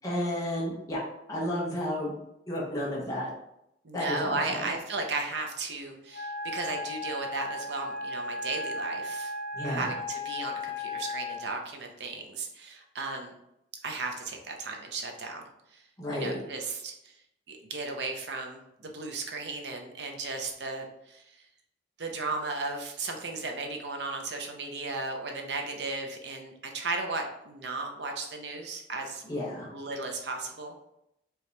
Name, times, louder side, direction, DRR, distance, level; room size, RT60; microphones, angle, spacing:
voice 1, 0.0-1.0 1.3-2.1 2.5-3.3 3.9-4.6 9.5-9.9 16.0-16.4 29.2-29.7, left 1 dB, 20° left, -6 dB, 1.0 m, -32 dB
voice 2, 3.8-9.3 9.6-13.3 13.8-15.4 15.7-15.8 16.1-17.2 17.5-21.5 22.0-30.8, right 3 dB, 75° right, 3 dB, 0.8 m, -35 dB
Wind instrument woodwind instrument, 6.1-11.5, left 2 dB, 60° left, 0.7 m, -36 dB
4.7 x 3.0 x 3.3 m, 0.80 s
head